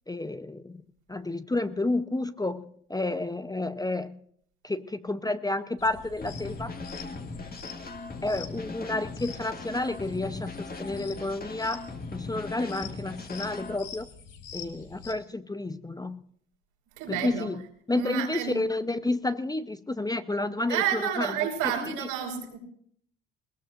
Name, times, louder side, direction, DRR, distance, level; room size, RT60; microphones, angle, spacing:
voice 1, 0.1-0.8 1.1-4.2 4.6-6.7 8.2-11.8 12.1-14.1 14.5-16.2 17.1-17.6 17.9-22.1, left 2 dB, 10° left, 11 dB, 0.8 m, -30 dB
sound 1, 5.8-15.1, left 7 dB, 65° left, 2.6 m, -46 dB
sound 2, 6.2-13.8, left 3 dB, 25° left, 2.0 m, -39 dB
voice 2, 17.0-17.5 17.9-18.6 20.7-22.6, right 9 dB, 80° right, 0 dB, 5.6 m, -30 dB
21.0 x 20.5 x 2.6 m, 0.63 s
hypercardioid pair, 70°, 34 cm